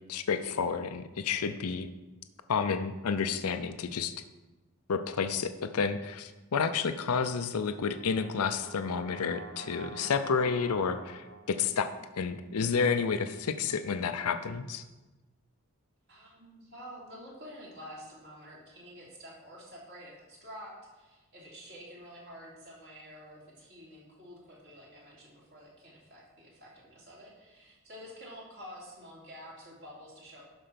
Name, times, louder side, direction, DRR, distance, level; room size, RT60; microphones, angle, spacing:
voice 1, 0.1-1.9 2.5-4.1 4.9-11.9 12.2-14.8, left 5 dB, 80° left, 9 dB, 0.5 m, -30 dB
Brass instrument, 7.4-11.7, right 2 dB, 85° right, 1.3 m, -47 dB
voice 2, 16.1-30.4, equal, 50° right, -5 dB, 3.1 m, -49 dB
11.5 x 4.5 x 5.9 m, 1.1 s
head